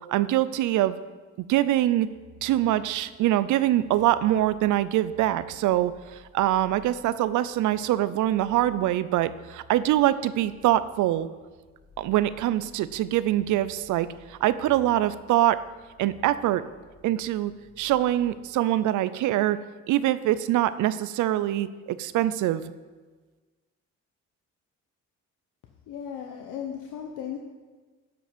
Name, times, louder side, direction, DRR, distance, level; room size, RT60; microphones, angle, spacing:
voice 1, 0.1-1.0 1.4-2.1 2.4-11.3 12.0-15.6 16.0-16.6 17.0-17.5 17.8-19.6 19.9-22.7, right 13 dB, 80° right, 15 dB, 0.5 m, -24 dB
sound 1, 2.0-18.5, left 1 dB, 70° left, 3.1 m, -55 dB
voice 2, 25.9-27.4, left 8 dB, 90° left, 2 dB, 0.8 m, -36 dB
13.5 x 5.2 x 5.1 m, 1.4 s
cardioid pair, 90°, 30 cm